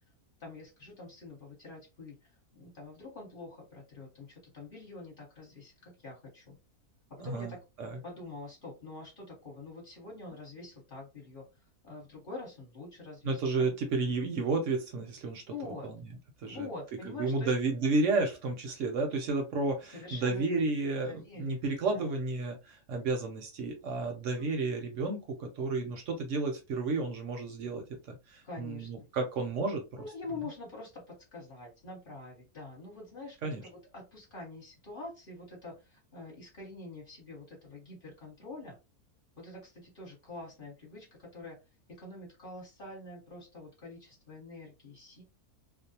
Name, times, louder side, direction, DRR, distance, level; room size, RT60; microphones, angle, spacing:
voice 1, 0.4-6.6 7.1-7.6 8.0-11.4 11.8-13.7 15.5-15.9 16.5-17.5 19.9-20.6 21.1-21.6 21.9-22.1 24.3-24.5 28.4-29.1 30.0-38.8 39.4-41.6 42.0-45.2, left 3 dB, 40° left, -2 dB, 1.0 m, -45 dB
voice 2, 13.2-15.4 15.8-16.0 16.4-16.7 17.2-30.0 33.4-33.6, right 3 dB, 65° right, 4 dB, 0.8 m, -32 dB
2.5 x 2.0 x 2.7 m, 0.27 s
omnidirectional pair, 1.6 m